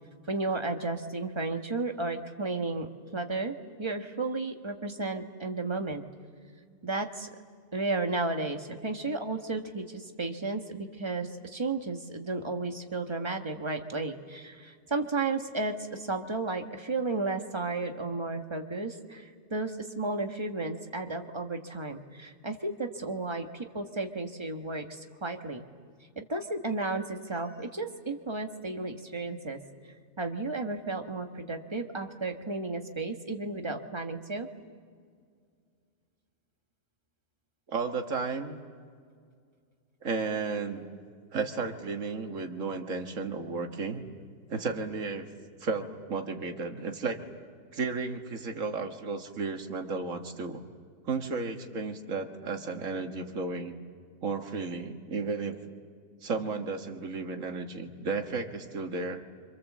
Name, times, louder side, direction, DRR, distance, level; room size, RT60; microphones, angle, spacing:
voice 1, 0.3-6.0 6.8-7.3 7.7-25.6 26.2-29.6 30.2-34.5, right 3 dB, 20° right, 5 dB, 1.4 m, -33 dB
voice 2, 37.7-38.6 40.0-40.9 41.3-44.0 44.5-45.3 45.6-47.2 47.7-50.6 51.1-53.8 54.2-55.6 56.2-59.2, right 4 dB, 65° right, 4 dB, 2.0 m, -33 dB
30.0 x 26.0 x 7.4 m, 2.1 s
omnidirectional pair, 1.5 m